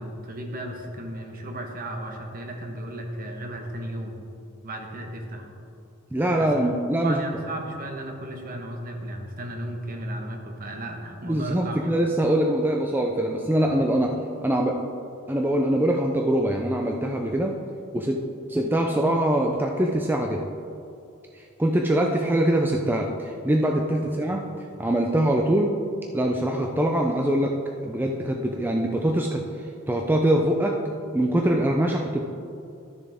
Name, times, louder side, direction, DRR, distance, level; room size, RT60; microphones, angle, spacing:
voice 1, 0.0-4.2 4.6-5.5 6.4-6.7 7.0-11.8 24.0-24.2, right 1 dB, 45° right, 2 dB, 1.1 m, -35 dB
voice 2, 6.1-7.2 11.2-14.1 14.4-14.8 15.3-17.6 17.9-18.2 18.5-20.4 21.3-24.5 24.8-25.7 26.1-27.5 27.8-30.8 31.1-32.3, right 1 dB, 10° right, 1 dB, 0.4 m, -23 dB
13.0 x 6.7 x 3.5 m, 2.6 s
head